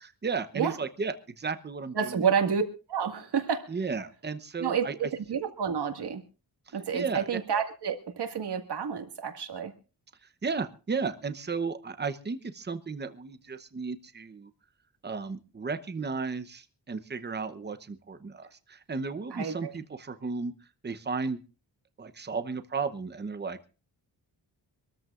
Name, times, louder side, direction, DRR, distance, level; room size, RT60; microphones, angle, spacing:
voice 1, 0.0-2.3 3.7-5.0 6.7-7.4 10.4-14.5 15.0-20.5 20.8-21.4 22.0-23.7, right 4 dB, 25° right, 10 dB, 0.9 m, -34 dB
voice 2, 1.9-2.6 2.9-3.7 4.6-6.2 6.7-9.7 19.3-19.7, right 7 dB, 65° right, 5 dB, 2.0 m, -29 dB
25.5 x 13.5 x 2.5 m, 0.35 s
wide cardioid pair, 145°, 42 cm